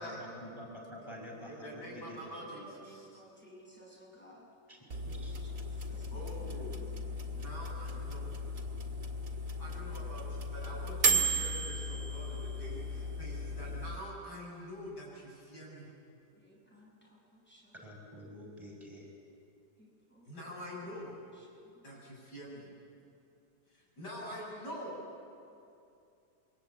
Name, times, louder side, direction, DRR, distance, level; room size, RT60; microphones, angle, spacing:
voice 1, 0.0-2.3 4.7-5.4 17.7-19.1, equal, 15° right, -2 dB, 5.5 m, -48 dB
voice 2, 1.5-3.2 6.1-6.9 7.3-8.4 9.4-15.9 20.2-21.2 21.8-22.7 23.7-25.0, equal, 80° left, -3 dB, 8.3 m, -45 dB
voice 3, 2.4-4.5 5.1-6.9 16.4-17.7 19.8-20.2 21.7-21.8, equal, 5° left, -4 dB, 6.9 m, -57 dB
sound 1, 4.9-14.0, right 1 dB, 50° right, 2.4 m, -35 dB
27.5 x 23.5 x 8.6 m, 2.6 s
omnidirectional pair, 1.8 m